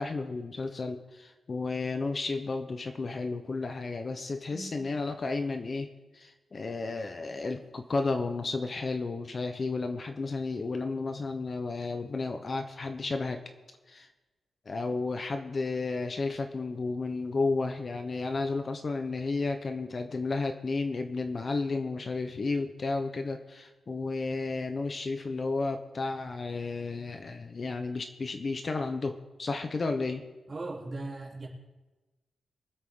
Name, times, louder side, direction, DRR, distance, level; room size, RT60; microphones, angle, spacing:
voice 1, 0.0-5.9 6.1-13.4 13.9-14.1 14.7-30.2, left 3 dB, 35° left, 6 dB, 0.9 m, -32 dB
voice 2, 4.4-4.9 30.5-31.5, right 2 dB, 30° right, -4 dB, 3.3 m, -39 dB
24.0 x 8.2 x 3.8 m, 1.1 s
wide cardioid pair, 165°, 0 cm